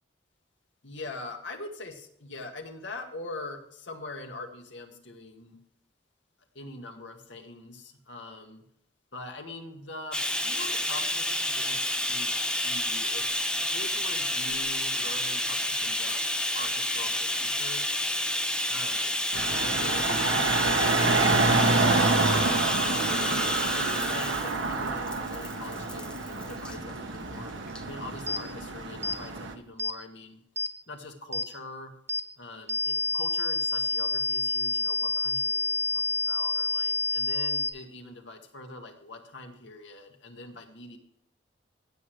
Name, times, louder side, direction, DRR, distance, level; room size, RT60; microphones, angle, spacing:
voice 1, 0.8-5.6 6.5-8.6 9.1-18.1 18.7-19.3 19.6-23.5 23.7-27.5 27.8-30.4 30.9-31.9 32.4-41.0, left 2 dB, 75° left, 3 dB, 1.9 m, -43 dB
Bathtub (filling or washing), 10.1-26.8 27.7-27.8 28.2-28.3, left 1 dB, 5° left, 0.6 m, -30 dB
sound 1, 19.3-29.5, right 3 dB, 85° right, 1.3 m, -27 dB
sound 2, 28.3-28.4 29.0-29.2 29.8-30.0 30.6-30.7 31.3-31.5 32.1-32.2 32.7-37.7, left 2 dB, 15° right, 1.3 m, -28 dB
16.5 x 7.9 x 3.4 m, 0.74 s
head